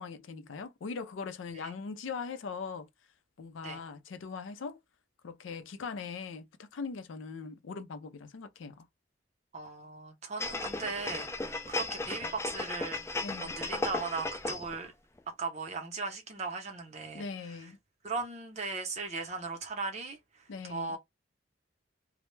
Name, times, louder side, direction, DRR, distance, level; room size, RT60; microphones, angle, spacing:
voice 1, 0.0-2.9 3.4-4.8 5.2-8.9 13.2-13.6 17.1-17.8 20.5-21.0, left 5 dB, 85° left, 0.4 m, -40 dB
voice 2, 9.5-14.9 15.4-17.7 18.0-21.0, right 4 dB, 35° right, 0.7 m, -38 dB
sound 1, 10.4-14.8 15.2-15.3, left 2 dB, 15° left, 0.3 m, -35 dB
2.1 x 2.0 x 3.0 m
head